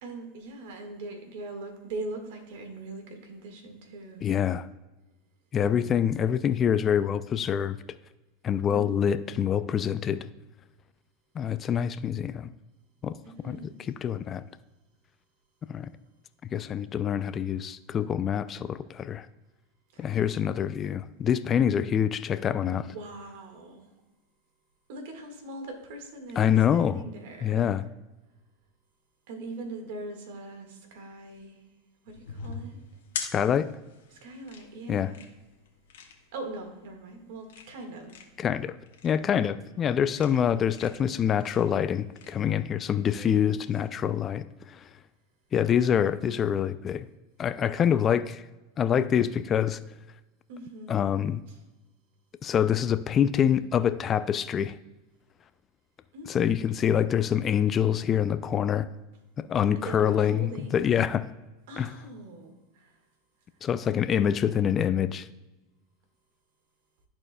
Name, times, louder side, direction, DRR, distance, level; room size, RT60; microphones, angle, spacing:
voice 1, 0.0-4.3 8.7-9.1 13.2-13.9 19.9-20.2 22.6-23.9 24.9-27.6 29.3-31.6 32.0-32.8 34.1-35.3 36.3-38.2 40.5-40.6 43.2-43.6 50.5-51.0 51.5-51.6 56.1-56.6 59.7-61.0 61.7-63.0, right 2 dB, 70° right, 4 dB, 1.6 m, -41 dB
voice 2, 4.2-4.7 5.5-7.8 8.4-10.3 11.4-12.5 13.0-13.1 13.4-13.6 14.0-14.4 15.7-15.9 16.5-19.3 20.0-22.8 26.4-27.0 27.4-27.8 33.2-33.7 34.9-35.1 38.4-38.7 39.0-44.9 45.5-47.1 47.4-48.4 48.8-49.8 50.9-51.4 52.4-54.8 56.3-58.9 59.4-61.3 61.8-61.9 63.6-65.3, left 8 dB, 30° left, 13 dB, 0.3 m, -26 dB
sound 1, 32.1-42.3, left 6 dB, 80° left, 1.2 m, -43 dB
13.0 x 4.4 x 2.2 m, 1.1 s
supercardioid pair, 115°, 0 cm